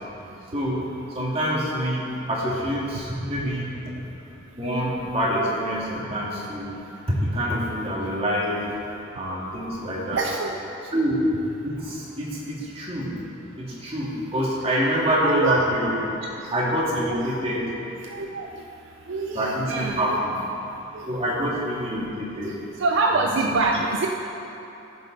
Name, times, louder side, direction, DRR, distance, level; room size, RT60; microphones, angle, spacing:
voice 1, 0.2-3.7 4.6-6.7 7.2-8.7 9.1-10.3 10.9-11.2 11.6-13.2 13.6-16.0 16.5-17.7 19.3-20.4 21.1-22.6 23.1-23.2 23.5-23.7, equal, 30° right, -6 dB, 1.8 m, -26 dB
voice 2, 10.1-10.6 15.2-15.6 16.4-16.5 17.1-17.2 18.0-18.5 19.1-20.2 20.9-21.1 22.8-24.1, right 3 dB, 65° right, 2 dB, 0.5 m, -25 dB
14.5 x 5.5 x 3.8 m, 2.9 s
head